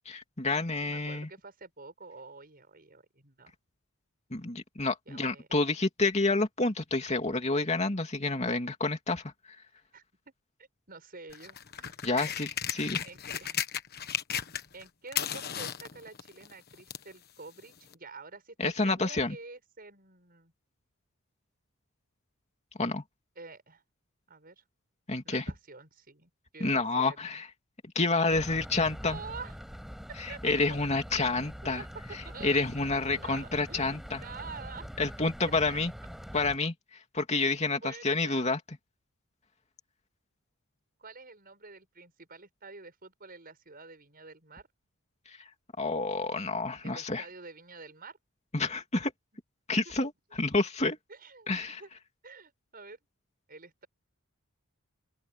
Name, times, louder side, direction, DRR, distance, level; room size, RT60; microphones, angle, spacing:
voice 1, 0.1-1.3 4.3-9.2 12.0-13.0 18.6-19.4 22.8-23.0 25.1-25.4 26.6-27.5 27.9-29.2 30.4-31.8 32.4-34.2 35.0-35.9 36.3-36.7 37.1-38.6 45.8-47.2 48.5-49.1 49.7-51.0 51.5-51.8, left 3 dB, 30° left, 2.7 m, -29 dB
voice 2, 0.8-3.5 5.1-5.5 9.9-10.0 10.6-12.4 13.0-13.6 14.7-20.5 23.4-23.8 24.3-24.6 25.2-27.4 29.0-29.6 30.1-30.4 30.7-30.9 31.6-32.6 32.9-34.9 35.7-35.8 37.7-38.5 41.0-44.7 46.8-48.2 49.9-50.0 51.1-51.9 52.2-53.0 53.5-53.9, right 4 dB, 40° right, 7.2 m, -48 dB
sound 1, 11.3-14.8 15.1-17.1 17.9-18.0, left 9 dB, 45° left, 1.3 m, -35 dB
sound 2, 28.3-36.6, equal, ahead, 7.3 m, -44 dB
open air
head